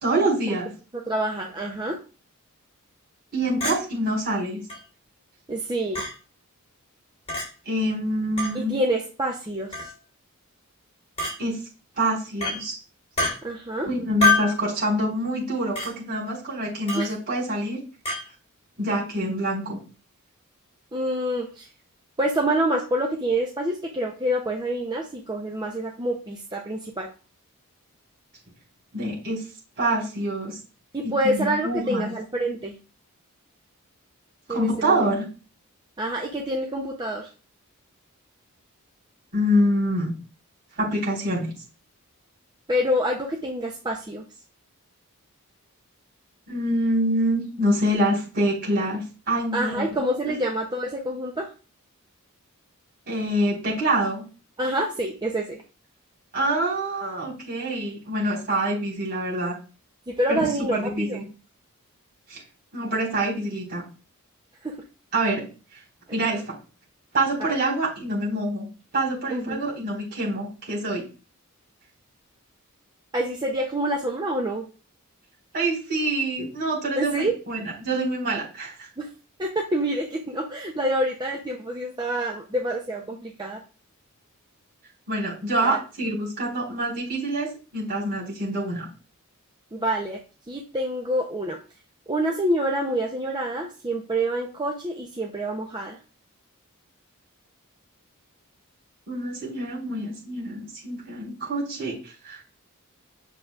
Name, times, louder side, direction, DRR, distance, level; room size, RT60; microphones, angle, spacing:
voice 1, 0.0-0.7 3.3-4.6 7.7-8.7 11.4-11.6 12.0-12.8 13.8-17.8 18.8-19.8 28.9-29.4 29.8-30.6 31.2-32.1 34.5-35.2 39.3-40.1 40.8-41.5 46.5-50.0 50.3-50.4 53.1-54.2 56.3-59.5 60.3-60.4 60.7-61.2 62.3-62.4 62.7-63.8 65.1-65.4 65.7-65.8 66.1-66.5 67.1-68.7 68.9-71.0 75.5-78.9 85.1-88.9 99.1-102.4, right 1 dB, 45° right, -5 dB, 4.3 m, -26 dB
voice 2, 1.1-2.0 5.5-6.0 8.5-9.9 13.4-13.9 16.9-17.1 20.9-21.7 22.2-27.1 30.9-32.7 34.5-35.1 36.0-37.3 42.7-44.3 49.5-51.5 54.6-55.6 60.1-61.2 64.6-64.7 69.3-69.6 73.1-74.7 77.0-77.3 79.0-79.1 79.4-83.6 85.6-85.8 89.7-90.2 90.5-91.6 92.1-96.0, right 1 dB, 20° right, 1 dB, 0.6 m, -27 dB
Chink clink, 3.6-3.8 4.7-4.8 5.9-6.1 7.3-7.4 8.4-8.5 9.7-9.9 11.2-11.3 12.4-12.6 13.2-13.3 14.2-14.6 15.8-15.9 16.9-17.1 18.1-18.2, left 2 dB, 30° left, 4.0 m, -24 dB
8.6 x 6.5 x 2.4 m, 0.36 s
head